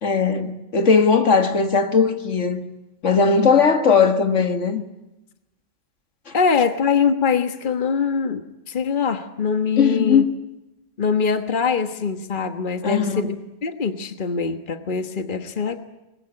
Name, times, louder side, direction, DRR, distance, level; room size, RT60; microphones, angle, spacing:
voice 1, 0.0-2.6 3.0-4.9 6.3-6.4 9.8-10.4 12.8-13.2, left 5 dB, 70° left, 1.9 m, -18 dB
voice 2, 6.3-10.2 11.0-13.4 13.6-15.8, left 5 dB, 40° left, 1.5 m, -23 dB
25.0 x 21.0 x 9.9 m
omnidirectional pair, 1.3 m